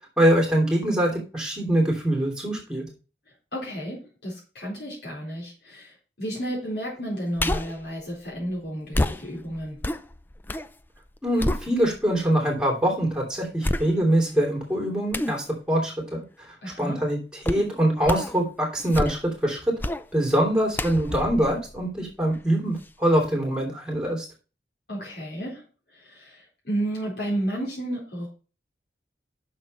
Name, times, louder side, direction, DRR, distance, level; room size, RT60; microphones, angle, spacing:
voice 1, 0.2-2.8 11.2-17.2 17.4-19.7 20.1-24.2, right 1 dB, 5° right, 0 dB, 3.0 m, -24 dB
voice 2, 3.5-9.8 16.6-17.0 24.9-25.6 25.9-28.3, right 1 dB, 70° left, -5 dB, 4.2 m, -32 dB
sound 1, 7.4-7.8 8.9-10.7 11.1-12.2 12.7-12.8 13.6-14.3 15.1-15.4 17.4-17.7 18.0-18.4 18.8-19.4 19.8-20.1 20.7-22.4 22.8-22.9, left 1 dB, 10° left, 0.4 m, -29 dB
9.9 x 6.6 x 4.2 m, 0.35 s
head